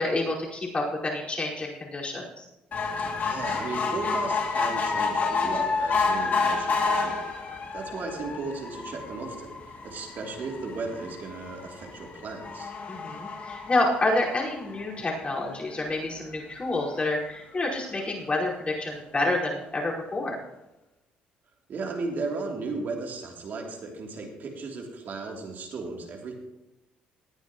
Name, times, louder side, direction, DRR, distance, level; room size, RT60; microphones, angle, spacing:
voice 1, 0.0-2.4 12.9-20.4, left 2 dB, 30° left, -4 dB, 4.9 m, -28 dB
sound 1, 2.7-15.3 15.9-16.0 16.3-16.4 16.6-16.7, left 4 dB, 50° left, 2.6 m, -30 dB
voice 2, 3.2-7.2 7.7-12.7 21.7-26.3, right 3 dB, 55° right, 0 dB, 3.1 m, -35 dB
18.5 x 9.9 x 3.1 m, 0.96 s
supercardioid pair, 75°, 4 cm